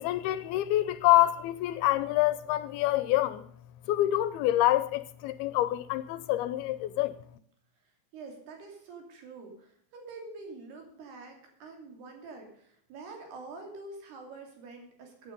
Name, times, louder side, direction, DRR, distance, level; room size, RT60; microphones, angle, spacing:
voice 1, 0.0-3.5 3.9-7.2, left 15 dB, 80° left, 2.4 m, -26 dB
voice 2, 8.1-15.3, right 3 dB, 75° right, 4.9 m, -46 dB
15.0 x 9.4 x 5.3 m
omnidirectional pair, 4.7 m